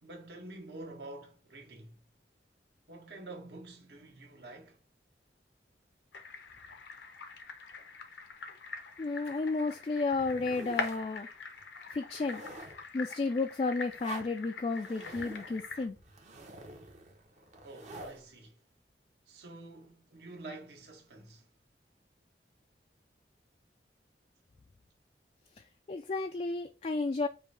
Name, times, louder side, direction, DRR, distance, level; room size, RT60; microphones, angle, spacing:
voice 1, 0.0-2.0 2.9-4.8 6.2-6.3 17.6-18.6 19.3-21.5, right 2 dB, 70° right, 1.3 m, -48 dB
sound 1, 6.1-15.9, left 4 dB, 80° left, 0.8 m, -43 dB
voice 2, 9.0-11.3 11.9-12.4 12.9-16.0 25.9-27.3, left 3 dB, 35° left, 0.3 m, -32 dB
sound 2, 10.1-11.1 11.6-11.7 12.1-12.9 14.0-14.3 14.7-18.2, right 2 dB, 40° right, 0.8 m, -48 dB
5.3 x 2.7 x 3.3 m
head